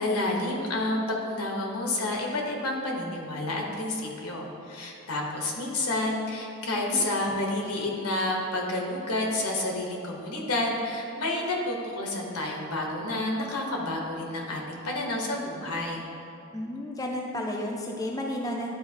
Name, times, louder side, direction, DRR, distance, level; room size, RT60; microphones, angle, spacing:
voice 1, 0.0-16.1, left 2 dB, 85° left, -1 dB, 1.1 m, -30 dB
voice 2, 16.5-18.7, left 1 dB, 15° left, 0 dB, 0.3 m, -32 dB
10.5 x 4.2 x 2.8 m, 2.7 s
head